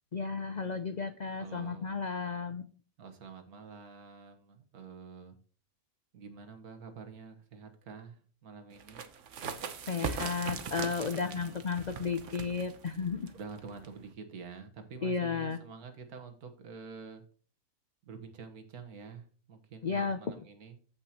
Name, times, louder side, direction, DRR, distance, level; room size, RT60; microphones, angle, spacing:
voice 1, 0.1-2.7 9.9-13.3 15.0-15.6 19.8-20.2, left 5 dB, 85° left, 9 dB, 0.3 m, -33 dB
voice 2, 1.4-2.0 3.0-5.4 6.1-9.0 11.2-11.8 13.3-17.2 18.0-20.8, right 5 dB, 85° right, 7 dB, 1.8 m, -48 dB
sound 1, 8.8-14.1, right 5 dB, 60° right, 1.2 m, -40 dB
14.5 x 5.5 x 2.9 m, 0.42 s
omnidirectional pair, 1.5 m